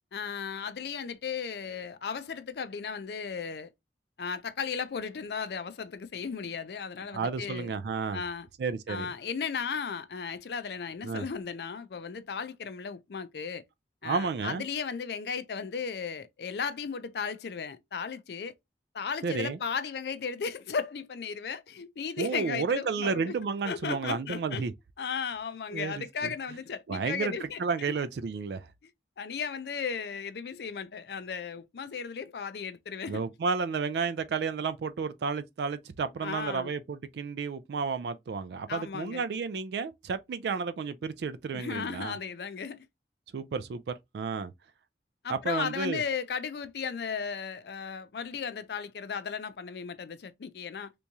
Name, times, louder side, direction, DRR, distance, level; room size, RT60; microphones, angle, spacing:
voice 1, 0.1-3.7 4.2-7.7 8.1-8.5 8.9-13.6 14.0-18.5 18.9-23.3 23.6-24.7 25.0-27.9 29.2-33.2 36.2-36.7 38.7-39.2 41.5-42.8 45.2-50.9, left 6 dB, 60° left, 0.4 m, -35 dB
voice 2, 7.1-8.2 8.6-9.1 11.0-11.3 14.0-14.6 19.2-19.6 22.2-24.7 25.7-26.3 26.9-28.7 33.1-42.2 43.3-44.5 45.3-46.0, right 5 dB, 70° right, 0.3 m, -32 dB
3.4 x 3.0 x 2.6 m
head